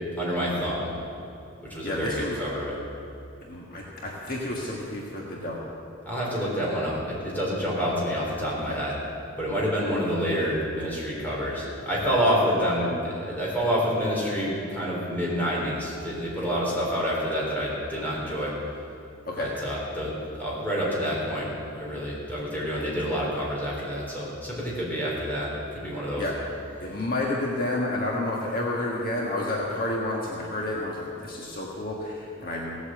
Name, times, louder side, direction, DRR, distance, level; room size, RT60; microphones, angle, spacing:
voice 1, 0.2-0.9 1.6-2.8 6.1-9.0 9.4-18.5 19.4-20.1 20.4-26.3, equal, 10° left, -6 dB, 4.0 m, -28 dB
voice 2, 1.8-2.4 3.4-5.7 8.7-8.8 19.3-19.5 26.2-26.3 26.8-32.8, left 1 dB, 45° left, -3 dB, 1.5 m, -30 dB
17.5 x 8.4 x 7.8 m, 2.6 s
head